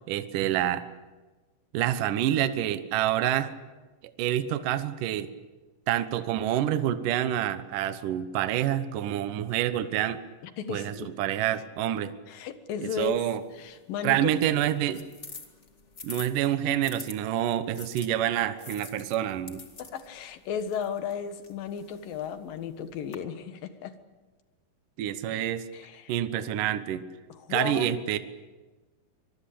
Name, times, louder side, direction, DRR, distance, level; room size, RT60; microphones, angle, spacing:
voice 1, 0.1-0.8 1.7-3.5 4.2-5.3 5.9-10.2 10.7-12.1 13.0-13.4 14.0-15.0 16.0-19.6 25.0-25.7 26.1-27.0 27.5-28.2, right 11 dB, 70° right, 11 dB, 2.4 m, -27 dB
voice 2, 10.4-11.2 12.3-14.3 19.8-24.0 25.3-26.1 27.3-28.0, left 7 dB, 65° left, 10 dB, 3.1 m, -35 dB
sound 1, 13.0-17.2 17.7-23.2, left 4 dB, 30° left, 1.4 m, -47 dB
25.0 x 22.5 x 8.6 m, 1.2 s
omnidirectional pair, 4.5 m